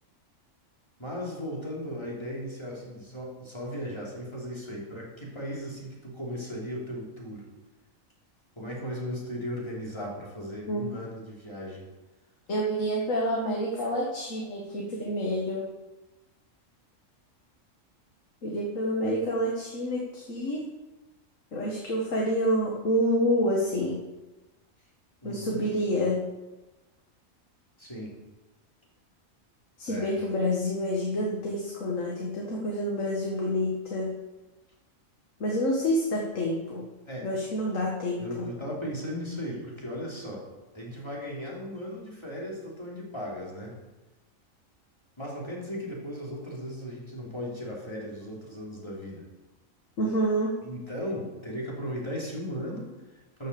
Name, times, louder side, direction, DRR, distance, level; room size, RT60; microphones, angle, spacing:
voice 1, 1.0-7.5 8.5-11.9 25.2-25.7 27.8-28.2 29.9-30.1 37.0-37.3 38.2-40.4 40.7-43.8 45.2-49.3 50.6-53.5, equal, 20° left, -4 dB, 3.3 m, -37 dB
voice 2, 12.5-15.7 18.4-20.7 21.5-24.0 25.2-26.3 29.8-34.2 35.4-36.9 37.2-38.2 50.0-50.6, equal, 70° left, -2 dB, 1.9 m, -28 dB
12.5 x 6.7 x 6.9 m, 1.1 s
omnidirectional pair, 1.4 m